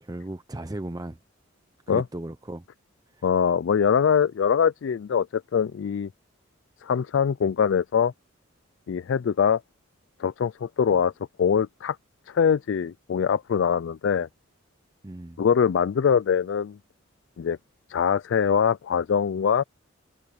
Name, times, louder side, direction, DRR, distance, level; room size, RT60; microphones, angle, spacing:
voice 1, 0.0-1.2 1.9-2.7 3.1-3.3 15.0-15.4, right 1 dB, 20° right, 0.6 m, -36 dB
voice 2, 3.2-6.1 6.8-8.1 8.9-9.6 10.2-11.1 11.4-12.0 12.3-14.3 15.4-16.8 17.4-17.6 17.9-19.6, left 7 dB, 60° left, 0.3 m, -23 dB
head